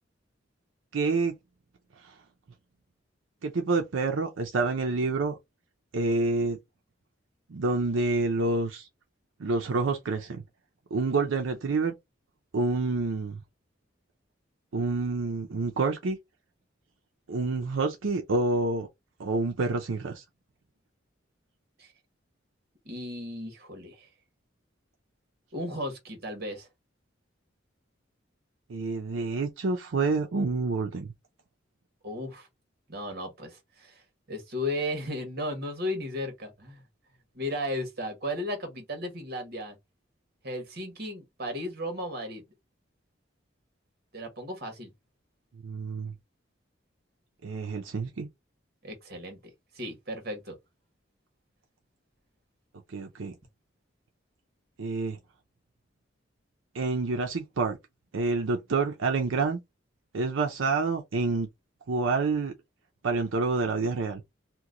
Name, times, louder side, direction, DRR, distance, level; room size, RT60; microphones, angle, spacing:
voice 1, 0.9-1.4 2.0-2.1 3.4-5.4 5.9-6.6 7.5-8.9 9.4-10.4 10.9-11.9 12.5-13.4 14.7-16.2 17.3-18.9 19.2-20.2 28.7-31.1 45.6-46.1 47.4-48.3 52.9-53.3 54.8-55.2 56.7-57.8 58.1-59.6 60.1-61.5 61.9-62.5 63.0-64.2, right 3 dB, 90° right, 0.6 m, -28 dB
voice 2, 22.8-24.1 25.5-26.7 32.0-32.5 32.9-34.0 34.3-36.8 37.3-39.8 40.4-42.4 44.1-44.9 48.8-49.4 49.7-50.6, left 1 dB, 55° right, 1.3 m, -35 dB
2.9 x 2.2 x 3.7 m
head